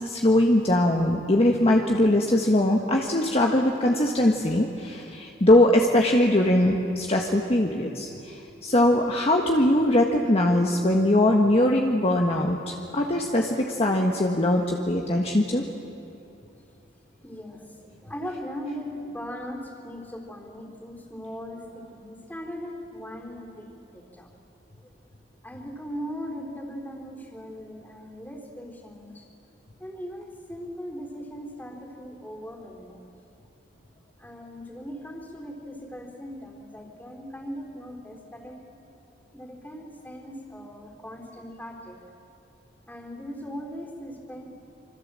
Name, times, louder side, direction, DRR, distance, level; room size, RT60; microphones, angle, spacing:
voice 1, 0.0-15.6, left 1 dB, 35° left, 1 dB, 1.4 m, -21 dB
voice 2, 17.2-24.3 24.8-24.9 25.4-29.3 29.8-33.1 34.2-38.7 39.3-42.0 42.9-44.5, equal, 10° left, 1 dB, 3.8 m, -39 dB
26.0 x 25.0 x 7.6 m, 2.8 s
head